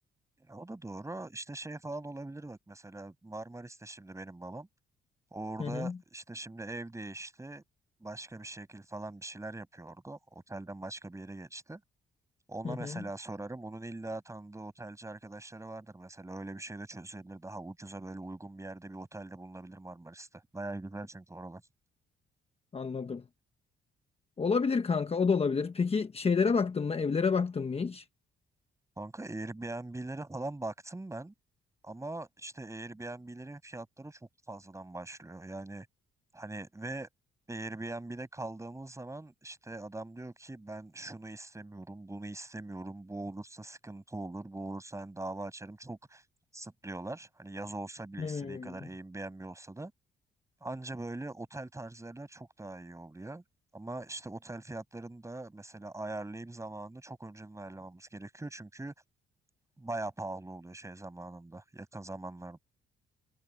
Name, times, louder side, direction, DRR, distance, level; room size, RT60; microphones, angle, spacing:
voice 1, 0.5-4.7 5.3-7.6 8.0-11.8 12.5-21.6 29.0-31.3 31.8-34.2 34.5-35.9 36.3-37.1 37.5-46.2 46.5-49.9 50.6-53.4 53.7-58.9 59.8-62.6, right 2 dB, 15° right, 7.3 m, -42 dB
voice 2, 5.6-6.0 12.6-13.0 22.7-23.2 24.4-28.0 48.2-48.9, left 5 dB, 30° left, 1.1 m, -29 dB
cardioid pair, 90°, 20 cm